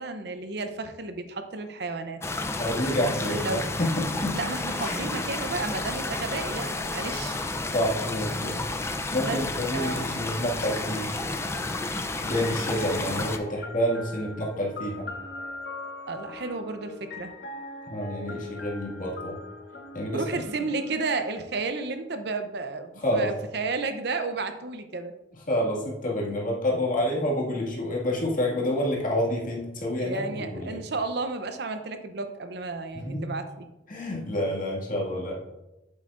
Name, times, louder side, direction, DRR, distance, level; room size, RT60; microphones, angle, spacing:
voice 1, 0.0-2.2 3.0-3.6 4.3-7.4 9.2-9.4 9.7-10.1 16.1-17.3 20.1-25.1 30.0-33.7, right 3 dB, 65° right, 8 dB, 0.7 m, -32 dB
sound 1, 2.2-13.4, left 2 dB, 15° left, 0.5 m, -31 dB
voice 2, 2.6-4.4 4.8-5.0 7.7-8.6 9.1-11.1 12.2-15.1 17.8-19.4 19.9-20.4 23.0-23.3 25.5-30.8 32.9-33.3 33.9-35.4, left 1 dB, 50° left, -3 dB, 2.1 m, -28 dB
sound 2, 11.5-21.3, left 2 dB, 65° left, 1.0 m, -41 dB
8.1 x 7.5 x 2.5 m, 0.96 s
head